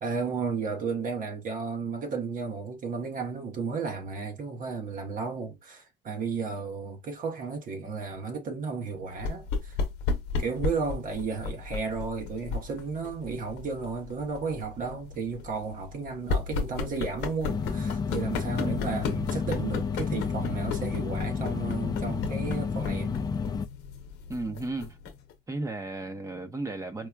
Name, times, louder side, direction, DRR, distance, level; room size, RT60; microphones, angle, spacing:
voice 1, 0.0-9.8 10.4-23.2, right 4 dB, 55° right, 0.9 m, -33 dB
sound 1, 9.2-25.3, left 4 dB, 85° left, 0.7 m, -35 dB
sound 2, 17.4-23.7, left 5 dB, 25° left, 0.4 m, -31 dB
voice 2, 24.3-25.0 25.5-27.1, right 2 dB, 20° right, 0.8 m, -34 dB
4.6 x 2.2 x 2.2 m
cardioid pair, 110°, 17 cm